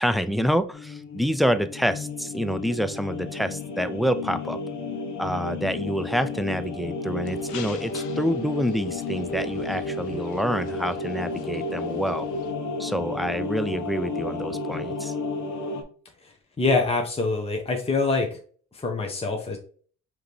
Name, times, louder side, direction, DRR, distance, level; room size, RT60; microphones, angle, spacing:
voice 1, 0.0-4.6 5.2-12.3 12.8-15.1, equal, ahead, 11 dB, 0.3 m, -27 dB
sound 1, 0.7-15.8, left 3 dB, 65° left, 1.1 m, -32 dB
sound 2, 7.2-12.5, left 8 dB, 85° left, 0.7 m, -47 dB
voice 2, 16.2-18.4 18.7-19.6, left 3 dB, 20° left, 2 dB, 1.0 m, -25 dB
4.8 x 3.0 x 3.2 m, 0.43 s
cardioid pair, 90°, 30 cm